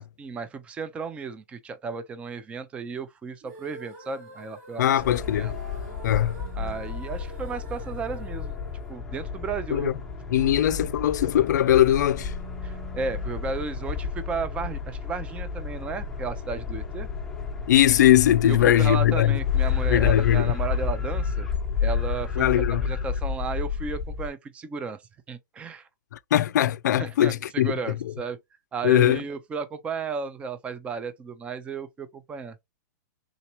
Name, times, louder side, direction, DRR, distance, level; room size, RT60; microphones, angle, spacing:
voice 1, 0.2-5.0 5.4-5.5 6.6-8.6 8.9-9.9 10.4-10.5 12.6-17.1 18.5-21.5 21.8-25.0 25.3-25.9 27.0-28.4 28.7-32.6, right 5 dB, 15° right, 0.4 m, -34 dB
sound 1, 3.4-9.6, right 1 dB, 75° right, 2.6 m, -46 dB
voice 2, 4.8-5.5 6.0-6.4 9.7-9.9 10.3-12.3 17.7-19.4 19.9-20.5 22.4-22.9 26.3-27.7 28.8-29.2, left 12 dB, 85° left, 0.4 m, -20 dB
sound 2, 5.0-24.3, left 6 dB, 5° left, 0.9 m, -30 dB
3.7 x 2.9 x 2.9 m
hypercardioid pair, 150°, 9 cm